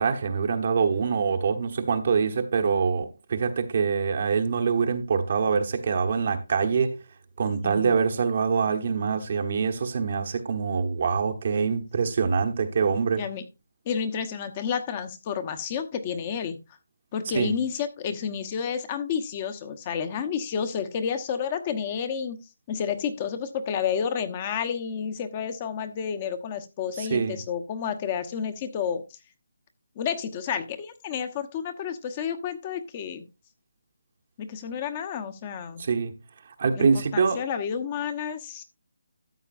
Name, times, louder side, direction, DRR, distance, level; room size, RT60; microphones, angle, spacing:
voice 1, 0.0-7.0 7.4-13.2 17.3-17.5 27.0-27.4 35.8-36.1 36.6-37.4, right 5 dB, 45° right, 1.1 m, -25 dB
voice 2, 7.6-7.9 13.2-13.4 13.9-16.6 17.1-29.0 30.0-33.2 34.4-35.8 36.7-36.9 37.1-38.6, left 7 dB, 25° left, 1.1 m, -30 dB
13.5 x 7.9 x 2.6 m
hypercardioid pair, 165°, 0 cm